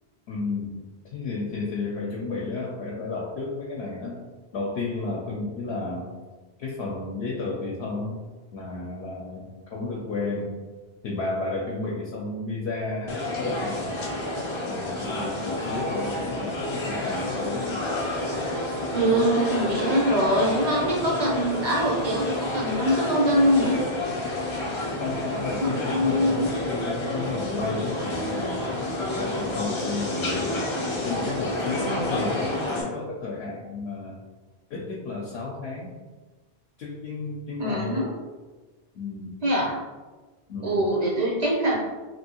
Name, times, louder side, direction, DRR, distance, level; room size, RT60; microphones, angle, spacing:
voice 1, 0.3-0.8 1.1-4.2 4.5-6.1 6.6-8.2 8.5-10.5 11.0-14.2 14.7-17.9 24.7-28.6 29.1-30.7 31.0-34.2 34.7-35.9 36.8-38.1 38.9-39.4 40.5-40.9, left 3 dB, 80° left, -3 dB, 0.8 m, -32 dB
sound 1, 13.1-32.8, left 1 dB, 40° left, 0.4 m, -29 dB
voice 2, 18.9-23.8 25.6-26.5 31.8-32.1 37.6-38.1 39.4-39.8 40.6-41.8, equal, 45° right, -3 dB, 0.6 m, -23 dB
2.9 x 2.6 x 2.7 m, 1.3 s
omnidirectional pair, 1.1 m